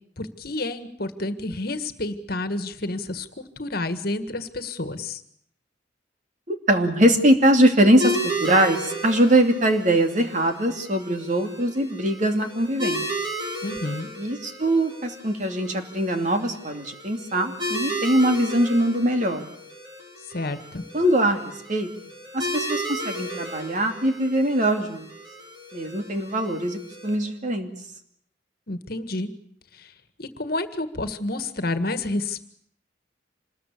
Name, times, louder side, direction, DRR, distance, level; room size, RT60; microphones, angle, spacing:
voice 1, 0.2-5.2 13.6-14.1 20.3-20.8 28.7-29.3 29.7-29.9 30.2-32.5, left 2 dB, 55° left, 11 dB, 1.8 m, -30 dB
voice 2, 6.5-13.0 14.2-19.5 20.9-21.9 22.3-25.1 25.7-27.7, right 1 dB, 40° right, 6 dB, 2.7 m, -22 dB
sound 1, 8.0-27.1, equal, 25° right, 5.9 m, -34 dB
26.5 x 20.5 x 8.5 m, 0.68 s
head